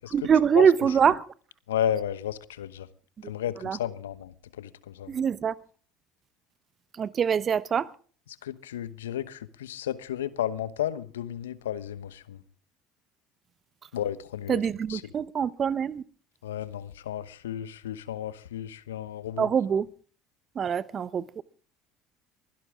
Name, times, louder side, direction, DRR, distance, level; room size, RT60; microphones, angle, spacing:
voice 1, 0.1-1.2 3.6-3.8 5.1-5.6 7.0-7.9 14.5-16.0 19.4-19.9 20.5-21.4, right 7 dB, 40° right, 1.0 m, -24 dB
voice 2, 1.7-2.9 3.2-5.1 8.4-12.4 13.9-14.6 14.9-15.0 16.4-19.5, left 10 dB, 80° left, 1.0 m, -33 dB
23.5 x 16.5 x 3.7 m
hypercardioid pair, 65°, 0 cm